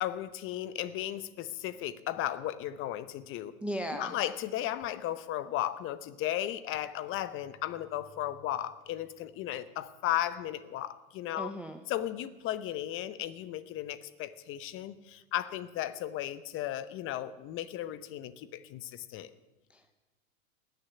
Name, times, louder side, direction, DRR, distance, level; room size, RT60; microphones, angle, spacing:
voice 1, 0.0-3.5 3.9-11.5 11.9-19.3, left 13 dB, 30° left, 15 dB, 0.8 m, -35 dB
voice 2, 3.6-4.1 11.4-11.8 19.7-19.9, equal, 5° right, 6 dB, 0.4 m, -37 dB
19.0 x 6.9 x 9.3 m, 1.1 s
hypercardioid pair, 130°, 43 cm